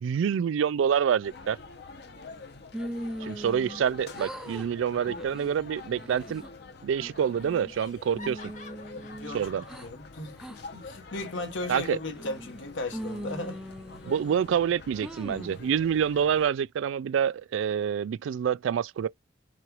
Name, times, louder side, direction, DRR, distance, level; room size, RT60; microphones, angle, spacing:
voice 1, 0.0-1.6 3.2-6.4 6.8-8.4 9.3-9.6 11.7-12.0 14.0-19.1, right 8 dB, 80° right, 0.3 m, -27 dB
sound 1, 1.2-16.5, left 3 dB, 60° left, 0.9 m, -46 dB
sound 2, 2.7-3.9 4.1-4.7 5.1-5.4 5.9-6.5 7.0-7.7 8.1-9.9 10.4-10.6 11.1-11.6 12.1-12.6 12.9-14.5 15.0-15.6, equal, 5° right, 0.5 m, -40 dB
Laughter, 6.5-6.6 6.9-7.0 7.4-9.9, left 4 dB, 40° left, 1.5 m, -50 dB
voice 2, 8.9-13.6, left 2 dB, 80° left, 1.5 m, -36 dB
5.9 x 2.4 x 3.0 m
head